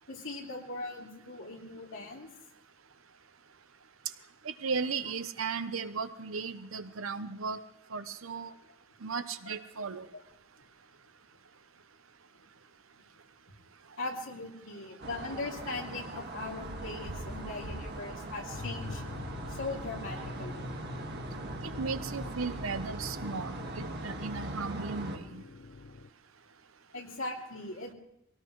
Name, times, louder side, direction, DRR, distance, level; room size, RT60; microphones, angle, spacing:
voice 1, 0.1-2.3 9.5-9.6 10.1-10.2 14.0-19.0 19.5-20.8 26.9-27.9, left 2 dB, 75° left, -1 dB, 2.8 m, -40 dB
voice 2, 4.4-7.6 7.9-8.5 9.0-10.1 21.8-25.4, right 4 dB, 85° right, 11 dB, 0.9 m, -36 dB
sound 1, 15.0-25.2, right 2 dB, 55° right, 1.6 m, -41 dB
sound 2, 18.5-26.1, left 3 dB, 55° left, 0.6 m, -44 dB
22.5 x 18.0 x 3.2 m, 0.81 s
head